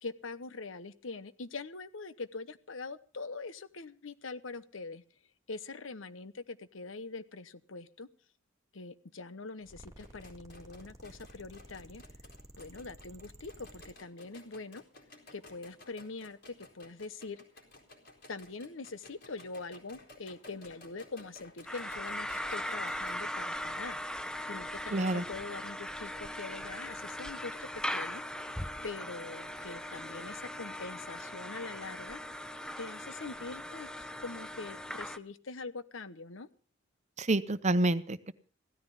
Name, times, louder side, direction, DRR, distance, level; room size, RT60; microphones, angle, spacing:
voice 1, 0.0-5.0 5.5-8.1 8.7-12.0 12.6-14.8 15.3-17.4 18.3-24.0 24.4-28.2 28.8-32.2 32.8-36.5, left 3 dB, 85° left, 14 dB, 1.0 m, -43 dB
sound 1, 9.6-13.9, right 1 dB, 20° right, 1.9 m, -53 dB
sound 2, 9.9-23.1, left 2 dB, 60° left, 4.2 m, -56 dB
sound 3, 21.7-35.2, left 1 dB, 5° left, 0.7 m, -39 dB
voice 2, 24.9-25.2 37.2-38.3, right 2 dB, 35° right, 13 dB, 0.8 m, -28 dB
16.5 x 13.5 x 5.5 m, 0.39 s
head